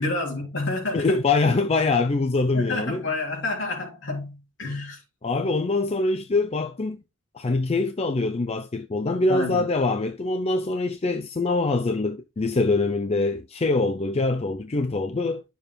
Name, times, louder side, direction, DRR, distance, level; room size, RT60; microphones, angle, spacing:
voice 1, 0.0-1.2 2.5-5.0 9.3-9.7, left 2 dB, 65° left, 3.8 m, -29 dB
voice 2, 0.9-3.0 5.2-7.0 7.3-15.4, left 3 dB, 30° left, 0.5 m, -24 dB
10.5 x 6.9 x 2.3 m
head